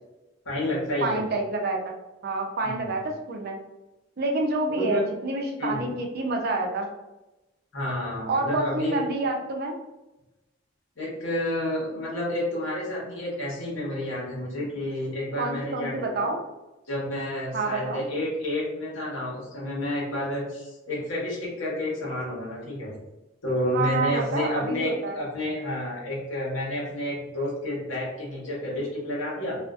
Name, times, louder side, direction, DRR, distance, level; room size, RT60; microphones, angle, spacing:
voice 1, 0.4-1.2 2.6-2.9 4.7-5.0 5.6-5.9 7.7-9.0 11.0-16.1 16.9-22.9 23.4-29.6, left 1 dB, 80° left, -6 dB, 1.1 m, -30 dB
voice 2, 1.0-1.9 2.2-3.6 4.2-6.9 8.3-9.8 15.4-16.4 17.5-18.0 23.7-25.2, right 3 dB, 55° right, 2 dB, 0.5 m, -28 dB
2.5 x 2.4 x 2.3 m, 1.0 s
head